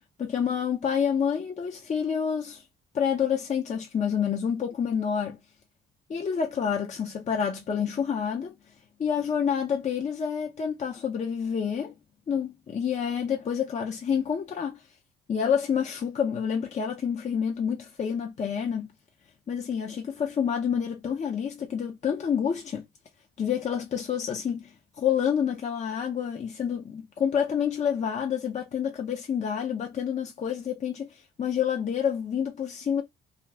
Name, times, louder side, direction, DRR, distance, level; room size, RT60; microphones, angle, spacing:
voice 1, 0.2-2.6 2.9-5.4 6.1-8.5 9.0-11.9 12.3-14.8 15.3-18.9 19.5-22.9 23.4-33.0, left 7 dB, 35° left, 0.5 m, -28 dB
2.4 x 2.3 x 3.2 m
cardioid pair, 90°, 20 cm